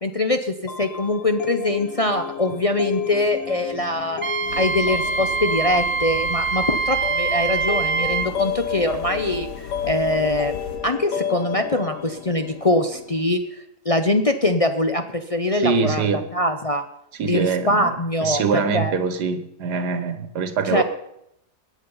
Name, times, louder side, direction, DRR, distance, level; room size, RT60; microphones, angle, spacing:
voice 1, 0.0-4.2 4.5-16.0 16.3-16.8 17.2-18.9 20.6-20.8, left 1 dB, 40° left, 6 dB, 0.4 m, -23 dB
sound 1, 0.7-13.3, left 9 dB, 60° left, 1.0 m, -32 dB
Wind instrument woodwind instrument, 4.2-8.3, right 4 dB, 60° right, 0.5 m, -24 dB
sound 2, 4.4-10.8, left 5 dB, 85° left, 3.3 m, -38 dB
voice 2, 15.6-16.2 17.2-18.0 18.2-20.8, right 5 dB, 80° right, 10 dB, 1.8 m, -23 dB
21.5 x 8.7 x 5.5 m, 0.80 s
omnidirectional pair, 1.8 m